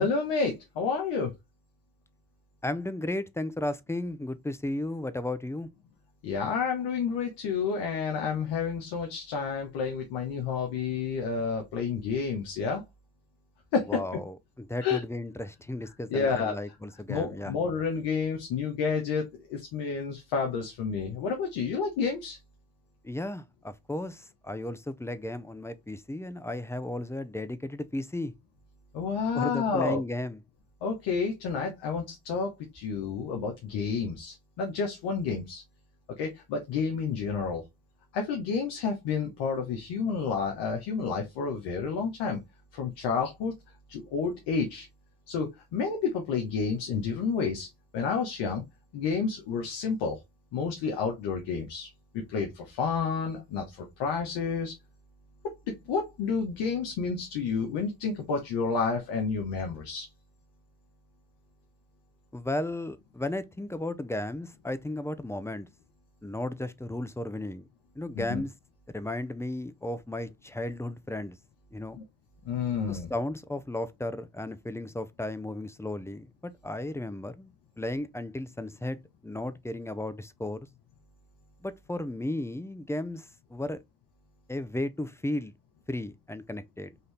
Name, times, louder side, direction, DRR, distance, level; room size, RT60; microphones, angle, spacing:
voice 1, 0.0-1.3 6.2-12.8 13.7-14.0 14.8-15.0 16.1-16.5 17.1-22.4 28.9-30.0 30.8-35.6 36.2-37.6 38.1-42.4 42.7-43.5 43.9-44.9 45.3-47.7 47.9-48.6 48.9-50.2 50.5-51.9 52.3-54.7 55.7-60.1 68.1-68.4 72.0-72.1 72.4-73.1, left 5 dB, 85° left, 1.1 m, -30 dB
voice 2, 2.6-5.7 13.9-17.5 23.0-28.3 29.3-30.4 62.3-65.7 66.2-67.7 68.0-68.5 68.9-71.4 71.7-72.0 72.9-77.5 77.8-80.7 81.6-83.8 84.5-85.5 85.9-86.9, left 1 dB, 5° left, 0.5 m, -34 dB
4.1 x 2.7 x 3.3 m
supercardioid pair, 70°, 41 cm